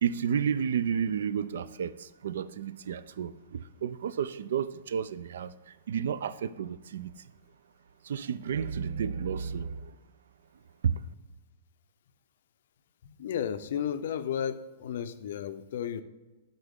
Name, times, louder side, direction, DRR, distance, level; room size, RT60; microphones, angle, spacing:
voice 1, 0.0-1.9 2.2-3.3 3.8-5.5 5.9-7.1 8.1-9.7, right 7 dB, 75° right, 0.3 m, -31 dB
voice 2, 13.0-16.0, left 8 dB, 60° left, 0.4 m, -33 dB
8.1 x 3.9 x 3.6 m
hypercardioid pair, 165°, 0 cm